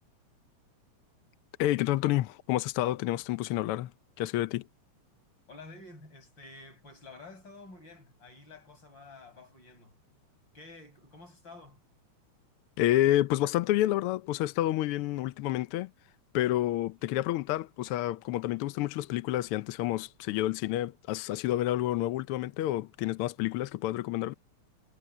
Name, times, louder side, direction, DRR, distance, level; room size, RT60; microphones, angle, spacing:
voice 1, 1.6-3.9 4.2-4.7 12.8-15.9 16.3-24.3, left 14 dB, 85° left, 1.2 m, -29 dB
voice 2, 5.5-10.0 10.5-11.8, left 3 dB, 35° left, 8.1 m, -50 dB
omnidirectional pair, 3.3 m